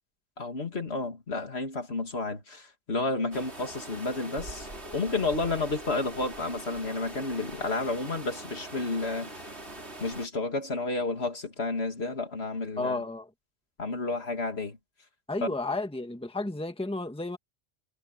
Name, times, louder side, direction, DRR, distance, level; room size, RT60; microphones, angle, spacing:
voice 1, 0.4-9.4 10.0-13.0 13.8-14.8 15.4-15.5, left 3 dB, 65° left, 2.6 m, -31 dB
sound 1, 3.3-10.3, right 1 dB, 70° right, 5.3 m, -42 dB
voice 2, 12.8-13.3 15.3-17.4, left 2 dB, 5° left, 1.4 m, -32 dB
omnidirectional pair, 1.2 m